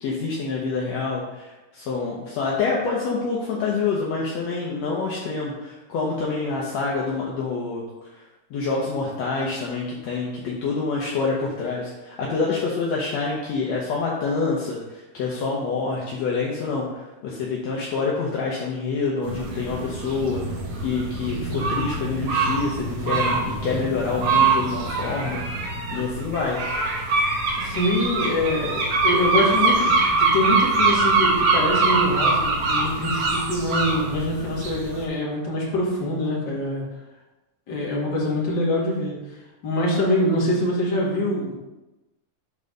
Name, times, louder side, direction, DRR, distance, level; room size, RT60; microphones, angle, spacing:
voice 1, 0.0-7.8 8.5-20.4 20.8-25.4 25.9-26.6, left 4 dB, 70° left, -4 dB, 2.1 m, -27 dB
sound 1, 19.2-35.0, right 3 dB, 60° right, 2.1 m, -23 dB
voice 2, 27.6-36.8 37.7-39.2 39.6-41.6, left 1 dB, 40° left, -5 dB, 2.4 m, -24 dB
8.6 x 4.1 x 5.3 m, 1.0 s
omnidirectional pair, 3.5 m